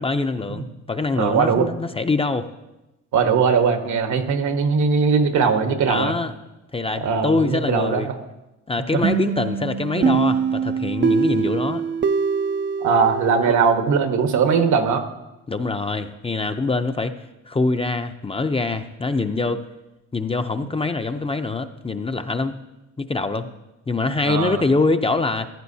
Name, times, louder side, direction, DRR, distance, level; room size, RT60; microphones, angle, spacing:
voice 1, 0.0-2.5 5.9-6.3 6.7-8.1 8.7-11.8 13.4-13.5 15.5-17.1 17.5-19.6 20.1-22.6 23.0-23.5 23.9-25.5, left 3 dB, 20° left, 8 dB, 0.6 m, -24 dB
voice 2, 1.2-1.7 3.1-6.1 6.9-8.1 8.9-9.0 9.9-10.2 12.8-15.0 24.2-24.6, right 5 dB, 75° right, 6 dB, 1.3 m, -20 dB
sound 1, 9.0-13.7, right 6 dB, 40° right, 0.5 m, -23 dB
15.0 x 10.5 x 2.8 m, 0.99 s
cardioid pair, 90°, 30 cm